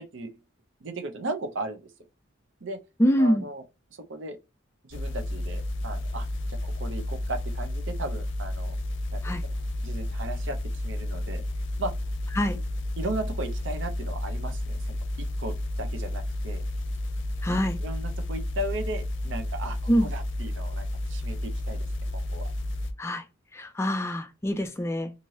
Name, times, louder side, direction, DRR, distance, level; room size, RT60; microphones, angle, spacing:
voice 1, 0.8-1.9 2.6-2.8 3.2-3.6 4.1-4.4 4.8-8.8 9.1-9.5 9.8-10.6 10.8-11.4 11.8-11.9 12.5-12.6 13.0-16.6 17.8-21.9 22.1-22.5, right 2 dB, 65° right, 0.6 m, -36 dB
voice 2, 3.0-3.5 9.2-9.4 12.4-12.6 17.4-17.8 19.9-20.1 23.0-23.2 23.5-25.1, equal, 15° left, 0.3 m, -25 dB
sound 1, 4.9-22.9, left 1 dB, 65° left, 0.5 m, -31 dB
3.1 x 2.6 x 2.7 m
head